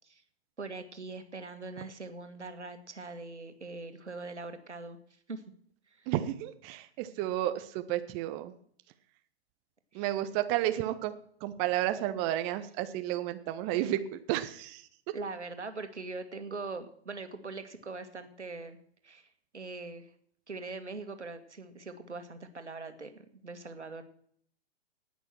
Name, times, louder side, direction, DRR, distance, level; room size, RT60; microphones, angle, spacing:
voice 1, 0.6-5.0 5.3-5.4 5.9-6.1 9.9-10.1 15.1-18.8 19.0-19.3 19.5-20.1 20.5-24.0, right 3 dB, 80° right, 8 dB, 1.8 m, -42 dB
voice 2, 6.1-8.5 9.9-11.1 11.4-14.8, right 13 dB, 20° right, 10 dB, 0.5 m, -32 dB
18.5 x 6.2 x 6.2 m, 0.62 s
figure-of-eight pair, 115°, 34 cm